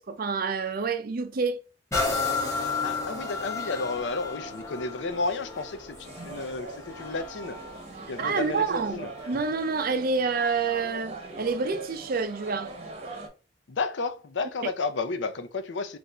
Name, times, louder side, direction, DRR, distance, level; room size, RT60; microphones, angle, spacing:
voice 1, 0.0-1.6 8.2-12.7, right 4 dB, 55° right, 0.5 m, -28 dB
sound 1, 1.9-9.5 10.1-10.2, left 4 dB, 15° left, 1.2 m, -33 dB
voice 2, 2.8-7.6 8.1-9.1 13.7-16.0, left 3 dB, 85° left, 0.6 m, -32 dB
sound 2, 6.0-13.3, right 2 dB, 35° right, 0.9 m, -42 dB
3.4 x 2.6 x 4.1 m
head